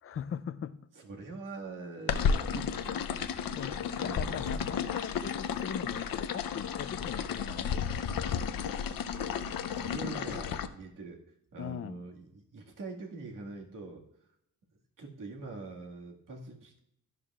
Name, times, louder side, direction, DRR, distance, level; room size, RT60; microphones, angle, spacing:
voice 1, 0.0-0.9 3.5-8.1 11.6-12.0, left 8 dB, 40° left, 15 dB, 0.5 m, -40 dB
voice 2, 1.0-4.8 9.3-9.5 9.7-11.2 11.5-14.0 15.0-16.8, right 3 dB, 70° right, 0 dB, 1.9 m, -44 dB
sound 1, 2.1-10.7, left 7 dB, 85° left, 0.7 m, -33 dB
12.0 x 11.5 x 2.4 m, 0.76 s
cardioid pair, 95°, 34 cm